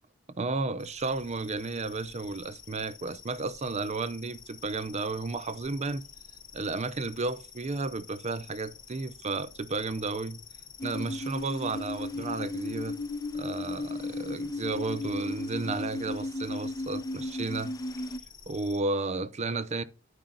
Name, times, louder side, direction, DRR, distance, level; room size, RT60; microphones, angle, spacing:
voice 1, 0.4-6.0 6.5-10.4 10.8-13.0 13.3-17.7 18.5-19.8, right 3 dB, 35° right, 0.5 m, -33 dB
sound 1, 0.8-18.8, left 6 dB, 40° left, 1.1 m, -50 dB
sound 2, 10.8-18.2, left 2 dB, 15° left, 0.3 m, -35 dB
10.0 x 4.8 x 3.8 m
head